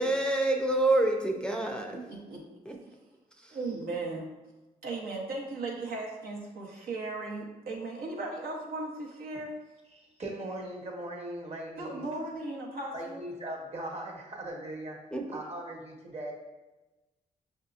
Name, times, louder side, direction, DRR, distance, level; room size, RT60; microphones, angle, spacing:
voice 1, 0.0-2.0 2.7-2.8 3.4-3.5 15.1-15.2, right 2 dB, 5° left, 1 dB, 0.5 m, -27 dB
voice 2, 1.9-2.4 2.9-3.0 3.5-4.3 4.8-9.5 11.8-13.2, right 2 dB, 75° right, -2 dB, 0.8 m, -37 dB
voice 3, 9.9-12.0 12.9-15.0 15.3-16.3, right 1 dB, 45° right, 0 dB, 1.1 m, -39 dB
5.8 x 2.7 x 2.4 m, 1.1 s
cardioid pair, 60°, 16 cm